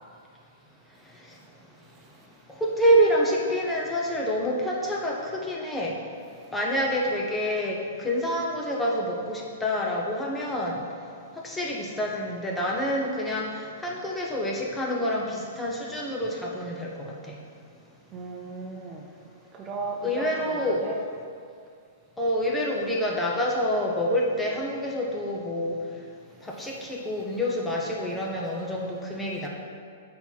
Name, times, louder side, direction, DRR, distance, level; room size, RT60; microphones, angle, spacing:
voice 1, 2.6-5.9 6.5-10.8 11.4-17.4 20.0-20.8 22.2-25.8 26.4-29.5, equal, 10° left, -2 dB, 0.7 m, -27 dB
voice 2, 18.1-19.1 19.5-21.0 26.5-26.8, right 3 dB, 30° right, 1 dB, 0.5 m, -36 dB
4.3 x 4.2 x 5.6 m, 2.2 s
hypercardioid pair, 120°, 0 cm